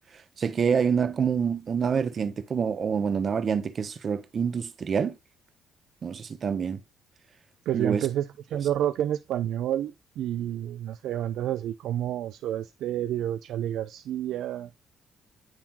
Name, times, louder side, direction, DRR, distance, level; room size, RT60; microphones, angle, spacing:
voice 1, 0.4-5.2 6.0-6.8 7.7-8.0, right 6 dB, 50° right, 0.7 m, -26 dB
voice 2, 7.7-14.7, right 11 dB, 80° right, 0.3 m, -29 dB
9.6 x 3.6 x 2.9 m
cardioid pair, 90°, 0 cm